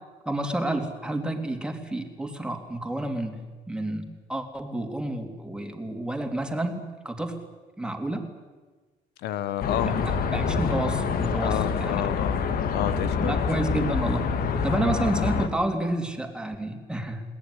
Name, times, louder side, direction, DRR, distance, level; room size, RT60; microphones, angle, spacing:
voice 1, 0.2-3.4 3.7-7.3 7.8-8.3 9.8-12.0 13.2-14.3 14.6-17.2, right 1 dB, 5° right, 5 dB, 3.3 m, -30 dB
voice 2, 9.2-10.0 11.4-12.4 12.7-13.4, left 11 dB, 80° left, 14 dB, 1.2 m, -29 dB
sound 1, 9.6-15.5, left 6 dB, 60° left, 2.3 m, -26 dB
21.5 x 18.5 x 9.9 m, 1.3 s
cardioid pair, 110°, 17 cm